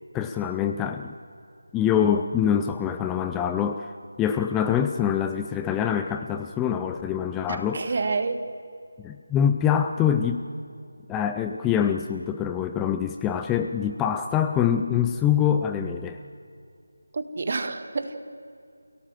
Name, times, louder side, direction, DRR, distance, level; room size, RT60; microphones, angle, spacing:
voice 1, 0.1-1.1 1.7-7.9 9.0-10.4 11.1-16.2, left 8 dB, 10° left, 6 dB, 0.5 m, -25 dB
voice 2, 7.5-8.5 17.1-18.2, right 4 dB, 40° right, 8 dB, 1.7 m, -28 dB
28.0 x 17.5 x 7.6 m, 2.4 s
figure-of-eight pair, 165°, 0 cm